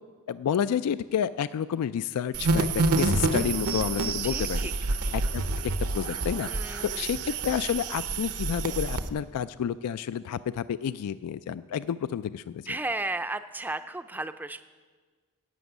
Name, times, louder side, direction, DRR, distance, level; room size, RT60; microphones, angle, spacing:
voice 1, 0.3-4.6 5.1-12.7, left 8 dB, 85° left, 15 dB, 0.3 m, -30 dB
sound 1, 2.3-9.1, right 3 dB, 75° right, 0.8 m, -28 dB
voice 2, 4.2-4.7 6.5-7.2 12.7-14.6, right 2 dB, 10° right, 10 dB, 0.4 m, -34 dB
11.5 x 8.0 x 9.4 m, 1.5 s
head